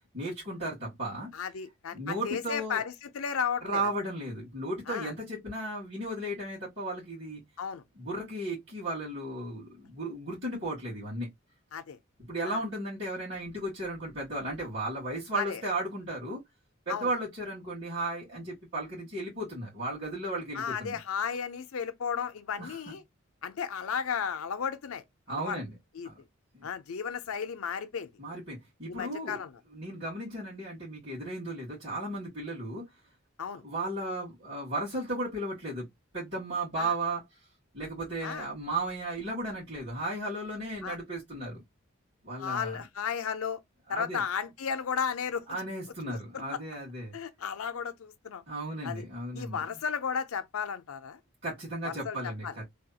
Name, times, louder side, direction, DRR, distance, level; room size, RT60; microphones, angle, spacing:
voice 1, 0.1-1.3 1.9-2.8 3.6-7.4 8.0-11.3 12.2-16.4 16.9-21.0 22.6-23.0 25.3-25.7 26.0-26.1 26.5-26.7 28.2-29.4 29.7-32.9 33.6-35.9 36.1-37.2 37.7-41.6 42.2-42.8 43.9-44.2 45.5-47.2 48.5-49.7 51.4-52.6, right 1 dB, 55° right, 1.9 m, -35 dB
voice 2, 1.3-3.8 4.9-5.1 7.6-7.8 11.7-12.0 12.4-12.6 15.3-15.6 16.9-17.1 20.5-23.0 23.4-25.6 25.9-26.1 26.6-28.1 28.9-29.5 33.4-33.6 36.8-36.9 38.2-38.5 40.8-41.0 42.4-43.6 43.9-45.5 46.1-46.2 46.5-46.6 47.1-48.4 48.8-49.0 49.3-51.2 51.8-52.5, left 7 dB, 85° left, 0.5 m, -34 dB
3.4 x 2.3 x 2.7 m
head